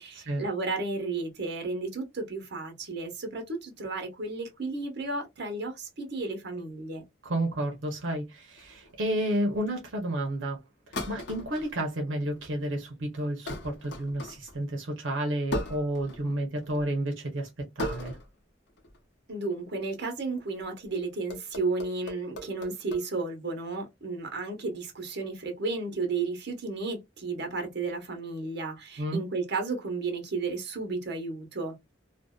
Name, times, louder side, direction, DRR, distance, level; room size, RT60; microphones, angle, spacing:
voice 1, 0.0-7.0 19.3-31.9, right 3 dB, 60° right, 0.9 m, -33 dB
voice 2, 7.2-10.6 11.1-17.5 17.8-18.2 29.0-29.2, right 1 dB, 85° right, 0.7 m, -31 dB
sound 1, 8.6-9.0 10.9-11.7 12.3-12.7 13.5-14.6 15.5-16.3 16.6-16.9 17.8-18.4 18.7-19.0 20.6-20.9 21.3-23.0, left 1 dB, 60° left, 0.8 m, -37 dB
2.6 x 2.1 x 2.2 m
head